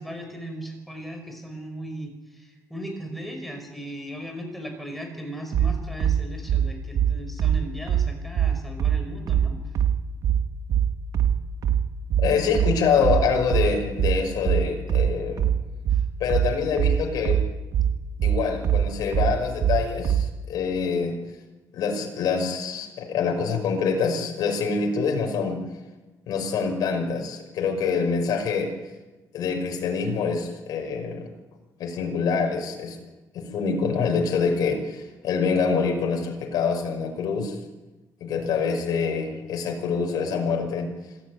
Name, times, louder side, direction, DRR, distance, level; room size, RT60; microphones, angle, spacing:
voice 1, 0.0-9.6 15.9-16.0 22.8-23.0, right 1 dB, ahead, 3 dB, 5.1 m, -37 dB
sound 1, 5.5-20.3, right 9 dB, 60° right, 1.8 m, -22 dB
voice 2, 12.2-15.5 16.2-17.4 18.2-21.2 21.7-25.6 26.3-28.7 29.3-31.3 31.8-33.0 33.3-37.6 38.2-40.9, left 5 dB, 75° left, 2 dB, 5.7 m, -25 dB
26.5 x 15.0 x 9.4 m, 1.2 s
cardioid pair, 150°, 7 cm